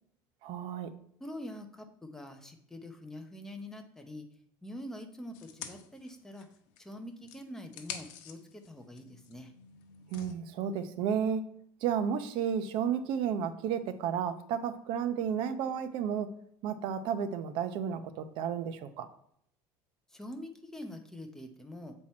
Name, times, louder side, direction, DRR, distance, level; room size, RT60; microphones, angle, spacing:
voice 1, 0.4-0.9 10.1-11.4 11.8-16.3 16.6-19.1, right 8 dB, 60° right, 10 dB, 0.7 m, -32 dB
voice 2, 1.2-4.3 4.6-6.5 6.8-9.5 20.1-21.9, left 1 dB, 5° left, 4 dB, 0.7 m, -45 dB
sound 1, 5.3-6.9 7.2-10.4, left 8 dB, 80° left, 0.9 m, -47 dB
7.3 x 4.5 x 4.3 m, 0.69 s
cardioid pair, 150°, 10 cm